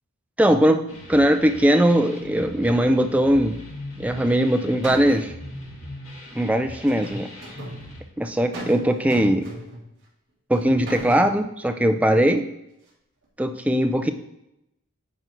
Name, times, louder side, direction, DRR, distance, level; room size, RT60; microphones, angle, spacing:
voice 1, 0.4-3.6 4.0-5.3 6.3-7.3 8.2-9.5 10.5-12.5 13.4-14.1, right 1 dB, 5° right, 7 dB, 0.3 m, -20 dB
sound 1, 0.9-8.0, left 1 dB, 70° left, 2.0 m, -40 dB
sound 2, 4.2-4.5 4.8-5.4 6.8-7.8 8.5-8.8 9.1-9.9 10.5-11.3, right 1 dB, 50° right, 2.5 m, -35 dB
9.0 x 3.9 x 4.4 m, 0.85 s
head